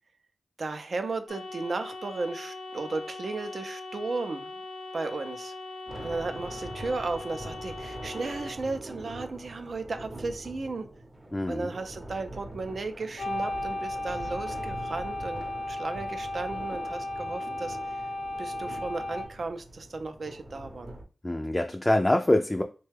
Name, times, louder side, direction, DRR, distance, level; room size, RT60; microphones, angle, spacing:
voice 1, 0.6-4.5 4.9-5.5 6.0-10.9 11.5-18.0 18.4-20.9, right 3 dB, 65° right, 8 dB, 0.4 m, -35 dB
sound 1, 1.3-8.6 13.2-19.3, left 2 dB, 80° left, 0.6 m, -37 dB
sound 2, 5.9-21.0, right 1 dB, 30° right, 0.7 m, -43 dB
voice 2, 11.3-11.7 21.2-22.6, left 1 dB, 20° left, 4 dB, 0.3 m, -25 dB
3.2 x 2.2 x 3.3 m, 0.35 s
wide cardioid pair, 70°, 0 cm